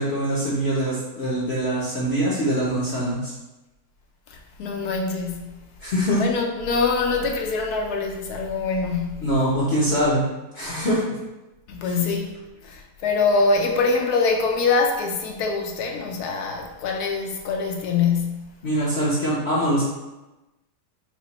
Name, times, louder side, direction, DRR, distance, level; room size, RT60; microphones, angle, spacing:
voice 1, 0.0-3.3 5.8-6.2 9.2-10.2 10.5-11.0 11.8-11.9 18.6-19.8, right 1 dB, 50° left, 0.9 m, -23 dB
voice 2, 4.3-5.6 6.1-9.3 11.7-12.4 12.6-18.6, left 4 dB, 75° left, 1.1 m, -24 dB
5.0 x 2.2 x 4.0 m
omnidirectional pair, 1.8 m